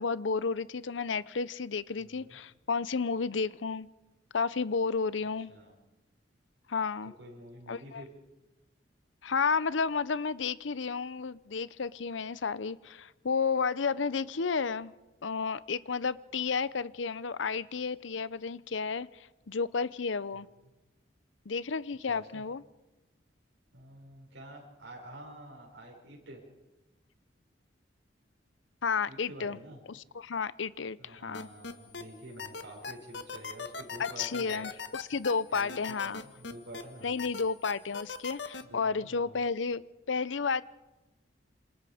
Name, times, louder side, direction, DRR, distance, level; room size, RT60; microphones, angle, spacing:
voice 1, 0.0-3.9 4.3-5.5 6.7-7.1 7.7-8.0 9.2-14.9 15.2-20.5 21.5-22.6 28.8-29.6 29.9-31.5 34.0-36.2 37.0-39.8 40.1-40.6, left 5 dB, 80° left, 18 dB, 0.7 m, -32 dB
voice 2, 2.0-2.4 5.5-5.7 7.2-8.1 22.1-22.4 23.7-26.4 29.1-29.8 31.0-34.7 35.5-35.8 36.0-37.4 38.6-39.4, right 1 dB, 80° right, -3 dB, 5.6 m, -48 dB
sound 1, 31.3-32.0 32.4-36.8 37.2-38.6, left 5 dB, 65° left, 1.6 m, -39 dB
27.5 x 27.0 x 5.0 m, 1.1 s
head